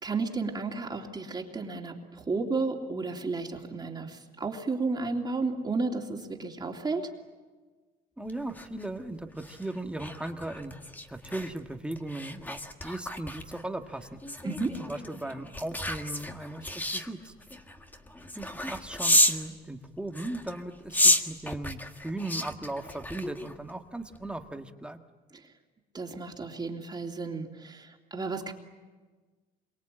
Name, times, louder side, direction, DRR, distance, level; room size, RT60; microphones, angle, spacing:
voice 1, 0.0-7.1 14.4-14.8 25.3-25.5 25.9-28.5, right 3 dB, 25° right, 1 dB, 2.9 m, -33 dB
voice 2, 8.2-10.7 11.1-14.2 14.8-17.3 18.3-25.0, right 2 dB, 5° right, 5 dB, 1.7 m, -37 dB
sound 1, 8.3-19.5 20.1-23.7 24.1-24.4, left 1 dB, 10° left, 1.7 m, -31 dB
27.0 x 24.0 x 8.9 m, 1.3 s
cardioid pair, 110°, 17 cm